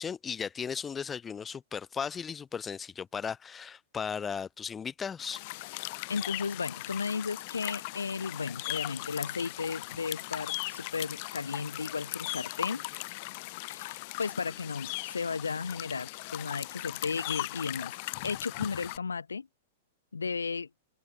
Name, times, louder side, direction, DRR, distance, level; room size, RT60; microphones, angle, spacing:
voice 1, 0.0-5.4, left 6 dB, 20° left, 5.2 m, -36 dB
sound 1, 5.2-19.0, left 24 dB, 50° left, 2.7 m, -38 dB
voice 2, 6.1-12.8 13.7-17.9 18.2-19.5 20.1-20.7, left 5 dB, 85° left, 1.6 m, -34 dB
open air
hypercardioid pair, 105°, 0 cm